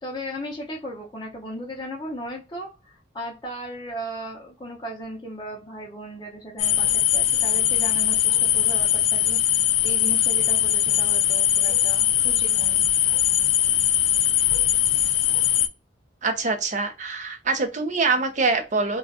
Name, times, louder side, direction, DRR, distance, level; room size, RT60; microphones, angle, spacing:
voice 1, 0.0-9.4 9.8-12.8, right 1 dB, 25° left, -3 dB, 0.6 m, -36 dB
sound 1, 6.6-15.7, left 11 dB, 70° left, 0.4 m, -21 dB
voice 2, 16.2-19.0, right 3 dB, 40° right, 5 dB, 0.6 m, -24 dB
2.4 x 2.2 x 3.5 m, 0.29 s
head